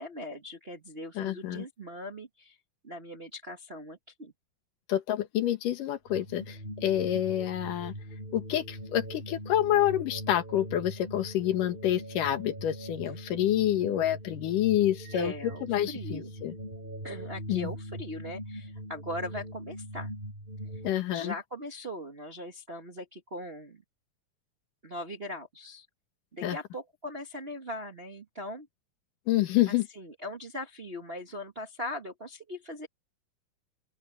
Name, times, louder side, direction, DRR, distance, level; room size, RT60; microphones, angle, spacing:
voice 1, 0.0-2.6 2.8-4.3 15.1-16.3 17.0-20.1 20.6-20.8 21.1-23.8 24.8-25.9 26.3-28.7 29.7-32.9, left 1 dB, 35° right, 0.9 m, -40 dB
voice 2, 1.2-1.6 4.9-7.9 8.3-15.3 15.7-16.5 17.5-17.7 20.8-21.3 26.4-26.6 29.3-29.9, left 12 dB, 85° left, 3.0 m, -28 dB
sound 1, 6.1-20.9, right 1 dB, 15° right, 6.9 m, -41 dB
open air
omnidirectional pair, 3.6 m